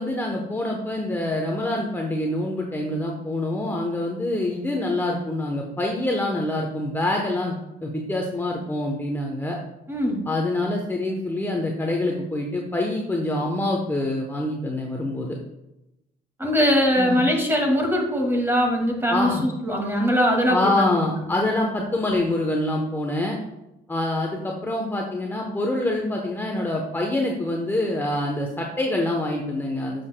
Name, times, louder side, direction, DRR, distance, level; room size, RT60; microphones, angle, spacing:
voice 1, 0.0-7.6 7.8-9.6 10.3-15.4 17.0-17.2 19.1-19.4 20.5-23.4 23.9-30.1, left 1 dB, 15° left, 0 dB, 0.9 m, -25 dB
voice 2, 9.9-10.2 16.4-21.1, equal, 15° right, 1 dB, 2.1 m, -21 dB
9.5 x 6.7 x 2.2 m, 0.91 s
cardioid pair, 110°, 17 cm